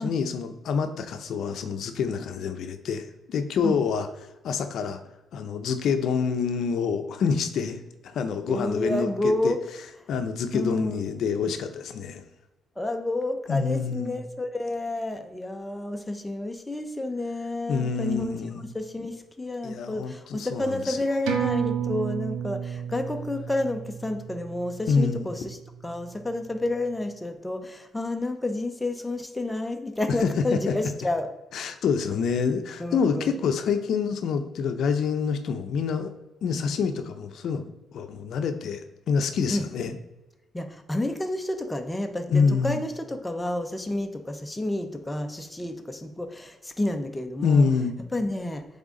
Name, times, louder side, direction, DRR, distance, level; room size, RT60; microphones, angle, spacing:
voice 1, 0.0-4.1 4.4-5.0 5.3-9.5 10.1-12.2 13.5-14.2 17.7-18.7 19.6-21.0 24.9-25.3 30.2-30.7 31.5-36.1 36.4-40.0 42.3-42.8 47.4-47.9, left 5 dB, 70° left, 8 dB, 0.6 m, -27 dB
voice 2, 8.5-9.6 10.5-11.0 12.8-18.4 18.7-25.6 25.8-31.3 32.8-33.4 39.5-39.6 40.5-47.7 48.1-48.7, left 1 dB, 10° left, 5 dB, 0.7 m, -30 dB
sound 1, 21.3-26.2 26.6-26.7, right 8 dB, 85° right, 1.0 m, -32 dB
8.0 x 3.6 x 3.7 m, 1.0 s
cardioid pair, 90°, 0 cm